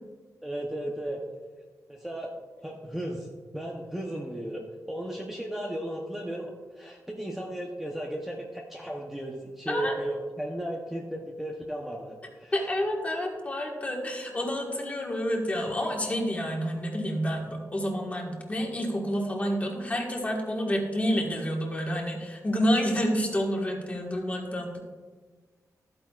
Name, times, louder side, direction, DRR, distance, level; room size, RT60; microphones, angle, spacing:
voice 1, 0.4-1.2 1.9-2.3 2.6-3.3 3.5-12.7, right 1 dB, 5° right, -2 dB, 0.7 m, -35 dB
voice 2, 12.5-24.8, equal, 20° left, 0 dB, 1.5 m, -29 dB
13.5 x 9.0 x 2.4 m, 1.4 s
wide cardioid pair, 180°, 6 cm